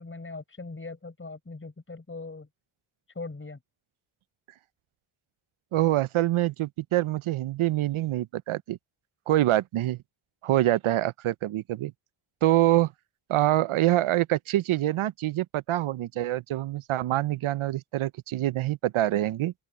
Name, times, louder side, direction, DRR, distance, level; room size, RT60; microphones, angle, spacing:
voice 1, 0.0-2.5 3.1-3.6, left 3 dB, 25° left, 5.8 m, -40 dB
voice 2, 5.7-8.8 9.3-10.0 10.4-11.9 12.4-12.9 13.3-19.5, right 14 dB, 80° right, 0.5 m, -25 dB
open air
wide cardioid pair, 165°, 48 cm